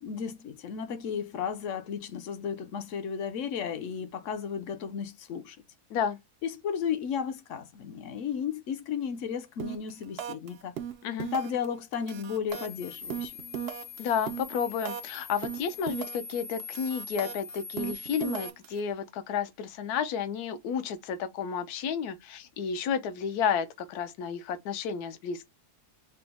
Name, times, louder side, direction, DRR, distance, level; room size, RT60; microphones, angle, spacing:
voice 1, 0.0-5.6 6.4-10.8 11.3-13.4, left 7 dB, 65° left, 0.8 m, -34 dB
sound 1, 9.6-9.9 10.2-10.5 10.8-11.7 11.9-15.2 15.4-16.3 16.6-18.8, right 9 dB, 80° right, 0.5 m, -37 dB
sound 2, 12.5-18.5, left 5 dB, 30° left, 0.6 m, -43 dB
voice 2, 14.0-25.5, left 7 dB, 80° left, 1.2 m, -31 dB
5.9 x 2.1 x 3.4 m
omnidirectional pair, 1.7 m